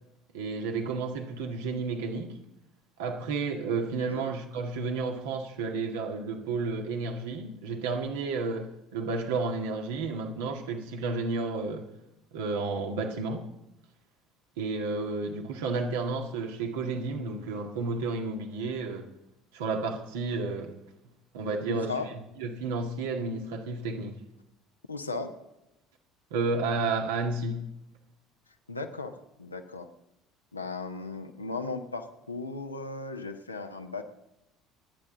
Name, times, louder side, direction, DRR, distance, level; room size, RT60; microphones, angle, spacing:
voice 1, 0.3-2.4 3.0-11.9 12.3-13.5 14.6-19.1 19.5-20.8 21.3-21.9 22.4-24.2 26.3-27.7, right 3 dB, 65° right, 1.9 m, -31 dB
voice 2, 21.7-22.1 24.9-25.3 28.7-29.9 30.5-34.0, left 3 dB, 85° left, 1.2 m, -36 dB
29.0 x 10.0 x 3.9 m
figure-of-eight pair, 60°, 0 cm